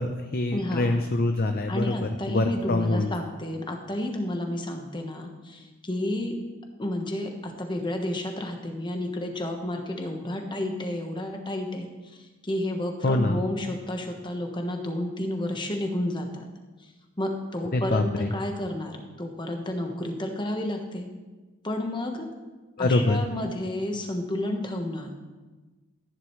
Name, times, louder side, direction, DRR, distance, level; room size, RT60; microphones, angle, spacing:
voice 1, 0.0-3.1 13.0-13.4 17.7-18.3 22.8-23.3, left 2 dB, 45° left, 6 dB, 0.6 m, -25 dB
voice 2, 0.5-0.9 1.7-6.4 6.8-11.9 12.1-16.5 17.2-21.1 21.6-22.3 22.8-25.1, left 1 dB, 20° left, 3 dB, 1.2 m, -31 dB
14.0 x 10.5 x 3.2 m, 1.2 s
head